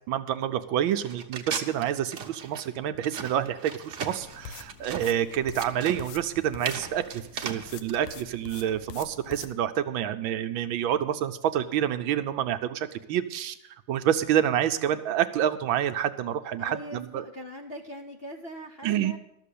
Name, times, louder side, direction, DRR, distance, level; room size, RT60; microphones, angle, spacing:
voice 1, 0.1-13.6 13.9-17.2 18.8-19.2, right 10 dB, 75° right, 10 dB, 1.4 m, -28 dB
sound 1, 1.0-8.0, right 6 dB, 50° right, 1.0 m, -37 dB
sound 2, 4.2-9.5, left 6 dB, 90° left, 1.7 m, -45 dB
voice 2, 16.6-19.2, equal, 45° left, 2 dB, 0.8 m, -41 dB
13.0 x 6.8 x 8.4 m, 0.77 s
omnidirectional pair, 2.3 m